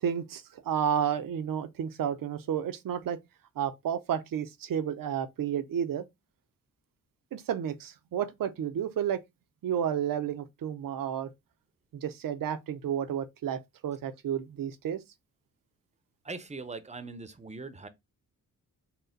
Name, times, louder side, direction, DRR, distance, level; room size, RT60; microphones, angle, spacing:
voice 1, 0.0-3.2 3.6-6.0 7.3-9.2 9.6-11.3 11.9-15.0, right 9 dB, 75° right, 0.6 m, -31 dB
voice 2, 16.2-17.9, right 3 dB, 20° right, 0.6 m, -41 dB
4.1 x 2.2 x 3.8 m
cardioid pair, 90°, 34 cm